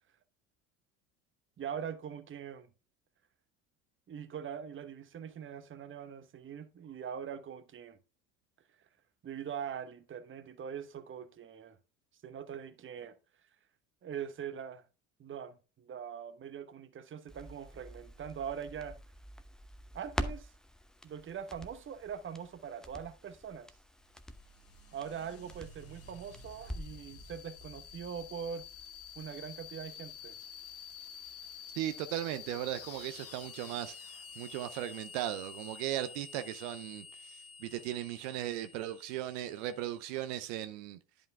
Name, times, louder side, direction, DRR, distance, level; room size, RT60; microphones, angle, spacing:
voice 1, 1.6-2.7 4.1-8.0 9.2-11.8 12.2-13.2 14.0-14.8 15.2-19.0 19.9-20.5 21.0-23.7 24.9-28.7 29.2-30.4, right 8 dB, 30° right, 1.0 m, -42 dB
Crackle, 17.3-27.1 27.4-27.5, equal, ahead, 0.8 m, -45 dB
sound 1, 24.0-40.3, left 6 dB, 35° left, 1.2 m, -50 dB
voice 2, 31.8-33.9 34.4-41.0, right 13 dB, 65° right, 0.8 m, -37 dB
10.5 x 5.1 x 3.4 m
hypercardioid pair, 70°, 41 cm